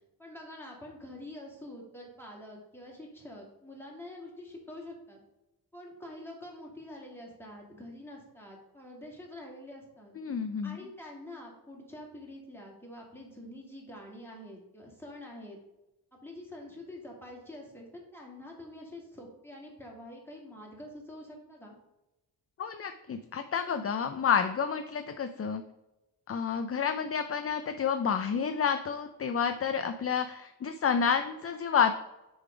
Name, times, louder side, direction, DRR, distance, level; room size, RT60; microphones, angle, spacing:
voice 1, 0.2-5.2 5.7-10.1 10.6-15.6 16.2-21.8, left 1 dB, 5° left, -2 dB, 2.2 m, -46 dB
voice 2, 10.2-10.8 22.6-25.6 26.3-31.9, left 7 dB, 35° left, 8 dB, 0.5 m, -29 dB
6.5 x 4.0 x 5.0 m, 0.98 s
cardioid pair, 75°, 41 cm